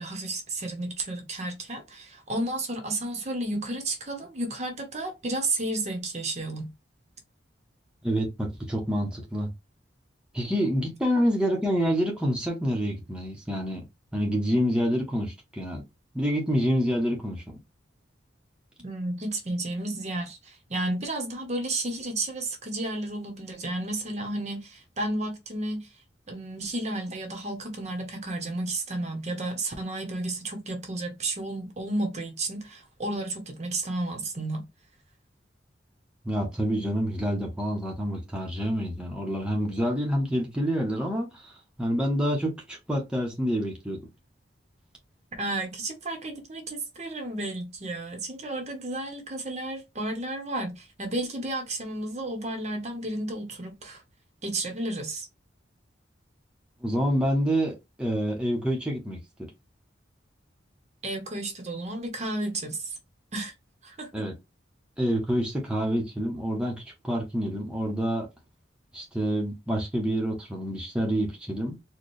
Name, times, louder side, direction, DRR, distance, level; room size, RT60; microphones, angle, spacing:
voice 1, 0.0-6.7 18.8-25.9 26.3-34.6 45.4-54.0 54.4-55.3 61.0-63.0 63.3-63.5 63.8-64.1, right 2 dB, 35° right, 0.9 m, -32 dB
voice 2, 8.0-9.5 10.3-13.8 14.1-15.8 16.1-17.4 36.2-41.5 41.8-44.0 56.8-59.2 64.1-64.3 65.0-68.3 68.9-71.8, equal, 5° right, 0.9 m, -27 dB
4.3 x 2.3 x 3.2 m
head